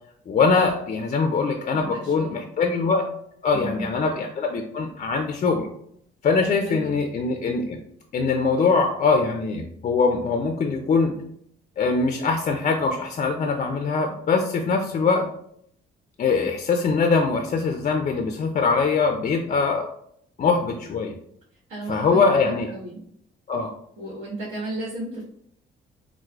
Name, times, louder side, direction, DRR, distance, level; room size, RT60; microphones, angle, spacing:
voice 1, 0.3-3.1 3.4-5.7 6.2-7.8 8.1-11.1 11.8-15.2 16.2-19.9 20.4-21.1 21.9-22.7 23.5-23.7, left 4 dB, 40° left, 4 dB, 0.4 m, -22 dB
voice 2, 1.7-2.4 3.5-3.9 6.4-6.9 21.7-23.0 24.0-25.2, right 2 dB, 75° right, -7 dB, 1.2 m, -34 dB
4.3 x 2.0 x 2.3 m, 0.69 s
cardioid pair, 90°, 20 cm